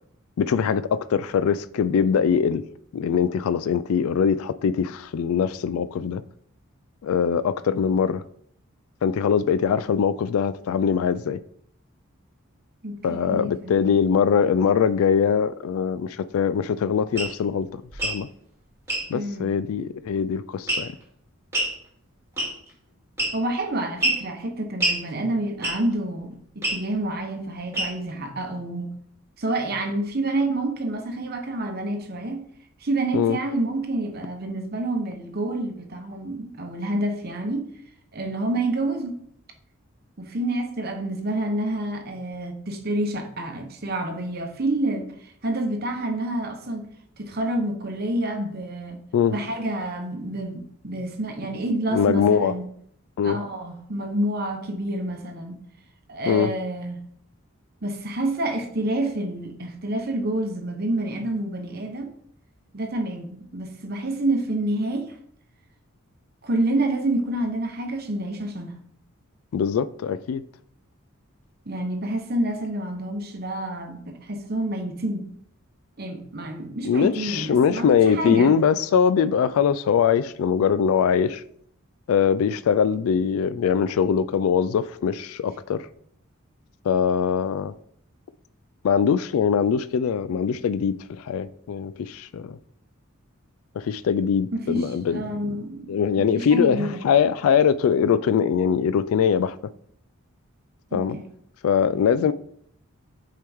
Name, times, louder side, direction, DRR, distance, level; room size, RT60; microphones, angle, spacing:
voice 1, 0.4-2.6 2.9-6.2 7.0-8.2 9.0-11.4 13.0-18.3 19.1-21.0 33.1-33.4 49.1-49.3 51.9-52.5 53.2-53.4 56.3-56.5 69.5-70.4 76.8-81.4 82.1-85.9 86.8-87.7 88.8-92.6 93.7-95.6 95.9-99.6 100.9-101.2 101.6-102.3, left 7 dB, 80° left, 0.3 m, -22 dB
voice 2, 12.8-13.9 19.1-19.5 23.3-29.0 29.4-32.4 32.8-37.7 38.1-39.2 40.2-46.9 47.2-49.0 49.3-52.6 53.2-55.6 56.1-57.0 57.8-62.1 62.7-65.1 66.4-68.7 71.7-75.3 76.0-78.5 94.5-95.9 96.2-97.0 100.9-101.2, right 1 dB, 45° right, 0.9 m, -28 dB
sound 1, 17.2-17.3 17.9-18.2 18.9-19.1 20.7-21.0 21.5-21.7 22.4-22.7 23.2-23.5 24.0-24.2 24.8-25.0 25.6-25.9 26.6-26.8 27.7-28.1, right 1 dB, 10° right, 2.7 m, -25 dB
7.5 x 4.7 x 3.5 m
head